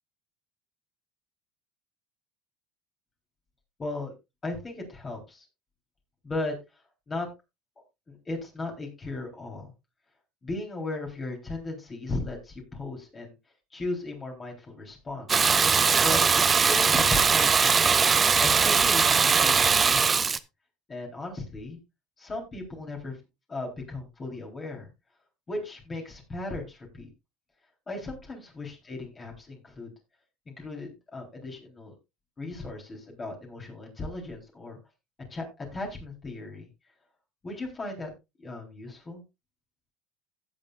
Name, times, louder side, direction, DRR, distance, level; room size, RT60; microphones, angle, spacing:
voice 1, 3.8-4.1 4.4-5.5 6.2-6.6 7.1-7.3 8.1-9.7 10.4-13.3 13.7-15.5 16.0-16.2 16.5-18.0 18.4-20.4 20.9-21.8 22.2-23.2 23.5-24.9 25.5-27.1 27.9-29.9 30.5-32.0 32.4-34.8 35.3-36.7 37.4-38.1 38.4-39.2, left 2 dB, 30° left, 1 dB, 3.8 m, -36 dB
Water tap faucet / Bathtub (filling or washing), 15.3-20.4, right 5 dB, 30° right, 0.7 m, -21 dB
16.5 x 7.3 x 2.5 m, 0.24 s
supercardioid pair, 95°, 0 cm